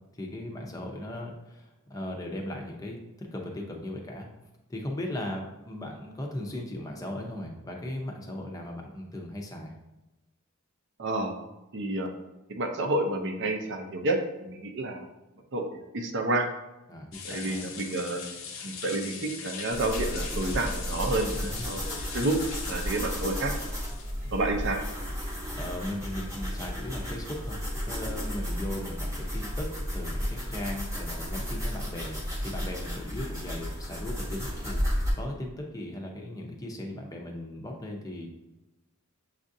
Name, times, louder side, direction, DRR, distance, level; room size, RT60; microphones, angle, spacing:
voice 1, 0.1-4.3 4.7-9.7 16.9-17.7 21.4-21.7 23.0-23.3 25.5-27.6 27.9-38.3, left 1 dB, 15° left, 0 dB, 0.6 m, -38 dB
voice 2, 11.0-11.3 11.7-12.1 12.5-14.2 14.5-15.0 15.5-16.5 17.3-18.2 18.6-22.4 22.7-23.5 24.3-24.8, right 2 dB, 55° right, 4 dB, 0.6 m, -29 dB
sound 1, 17.1-24.1, left 6 dB, 60° left, 0.6 m, -41 dB
sound 2, 19.7-35.1, equal, 15° right, 1.0 m, -33 dB
7.2 x 2.5 x 2.6 m, 1.0 s
head